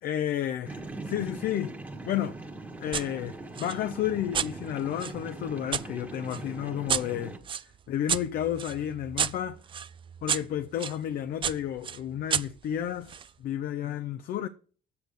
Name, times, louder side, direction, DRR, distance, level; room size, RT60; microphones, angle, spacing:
voice 1, 0.0-1.7 2.0-2.4 2.8-7.4 7.9-9.6 10.2-14.5, left 10 dB, 60° left, 0.6 m, -31 dB
sound 1, 0.7-7.4, right 2 dB, 10° right, 1.3 m, -41 dB
sound 2, 2.9-3.1 3.5-5.9 6.3-11.0 11.4-13.3, right 8 dB, 30° right, 0.3 m, -33 dB
8.3 x 6.6 x 5.2 m
cardioid pair, 110°, 17 cm